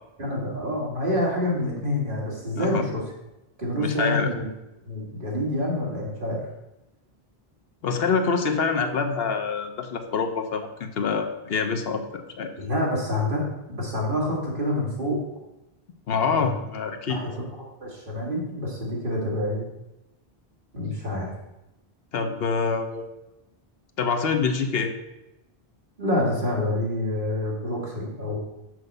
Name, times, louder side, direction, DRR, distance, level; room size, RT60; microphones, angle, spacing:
voice 1, 0.2-3.0 3.6-4.5 4.9-6.4 12.6-15.2 16.3-16.6 17.1-17.3 17.8-19.6 20.7-21.3 26.0-28.4, left 1 dB, 55° right, -3 dB, 2.4 m, -27 dB
voice 2, 2.6-2.9 3.7-4.3 7.8-12.5 16.1-17.2 22.1-23.0 24.0-24.9, left 5 dB, 75° left, 6 dB, 1.0 m, -26 dB
6.3 x 4.9 x 6.6 m, 0.94 s
omnidirectional pair, 1.0 m